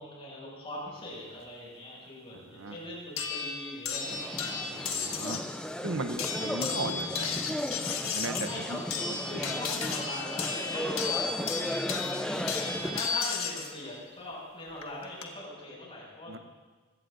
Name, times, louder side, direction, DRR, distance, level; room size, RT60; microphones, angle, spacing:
voice 1, 0.0-4.5 8.4-8.8 9.3-11.3 12.2-16.4, left 1 dB, 30° left, -5 dB, 6.0 m, -41 dB
voice 2, 2.3-2.8 4.7-5.4 5.8-8.8 9.1-9.5 16.3-16.4, right 2 dB, 70° right, 9 dB, 0.9 m, -38 dB
sound 1, 3.2-5.5 6.2-13.7 14.8-15.2, left 5 dB, 75° left, 1.6 m, -34 dB
sound 2, 4.0-13.2, equal, 5° left, 0.5 m, -35 dB
25.5 x 17.0 x 2.6 m, 1.3 s
head